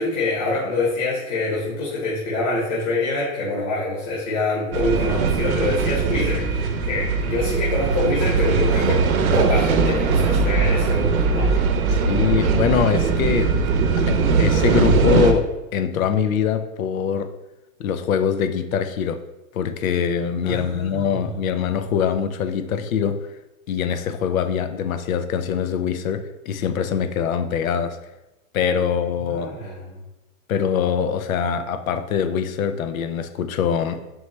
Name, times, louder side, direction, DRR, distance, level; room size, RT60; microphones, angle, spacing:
voice 1, 0.0-9.0 9.3-11.5 20.4-21.3 29.2-30.0, left 2 dB, 45° left, -6 dB, 1.3 m, -25 dB
sound 1, 4.7-15.3, right 4 dB, 90° right, 0.7 m, -20 dB
voice 2, 11.9-13.7 14.0-17.3 17.8-19.2 19.5-23.3 23.7-28.0 28.5-29.5 30.5-34.0, left 7 dB, 80° left, 9 dB, 0.6 m, -23 dB
4.6 x 3.2 x 3.2 m, 0.98 s
hypercardioid pair, 160°, 41 cm